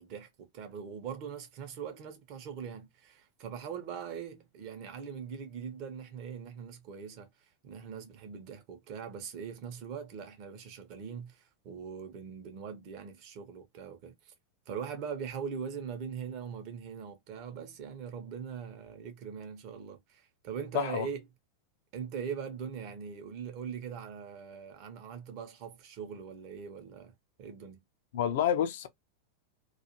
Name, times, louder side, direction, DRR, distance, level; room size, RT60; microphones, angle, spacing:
voice 1, 0.0-14.3 14.7-21.2 21.9-27.1 27.4-27.8, right 7 dB, 45° right, 0.8 m, -41 dB
voice 2, 20.7-21.1 28.1-28.9, left 9 dB, 55° left, 0.4 m, -28 dB
2.4 x 2.4 x 2.9 m
figure-of-eight pair, 90°, 0 cm